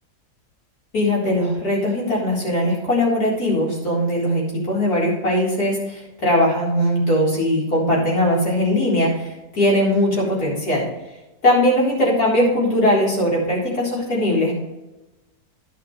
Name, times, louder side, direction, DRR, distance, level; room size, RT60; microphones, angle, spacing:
voice 1, 0.9-10.8 11.4-14.5, left 1 dB, 75° left, -5 dB, 4.6 m, -20 dB
11.5 x 10.5 x 3.3 m, 1.0 s
omnidirectional pair, 1.6 m